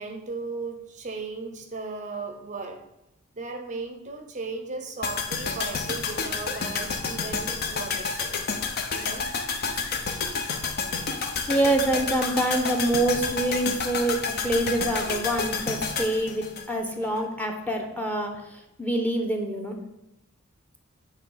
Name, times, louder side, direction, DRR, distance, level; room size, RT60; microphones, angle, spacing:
voice 1, 0.0-2.9 3.3-8.4 8.9-9.3, right 3 dB, 35° right, 6 dB, 0.6 m, -36 dB
sound 1, 5.0-17.2 17.5-17.6, left 5 dB, 50° left, 0.7 m, -30 dB
voice 2, 11.5-18.4 18.8-19.8, right 1 dB, 5° left, 3 dB, 0.8 m, -26 dB
8.4 x 3.4 x 5.5 m, 0.89 s
head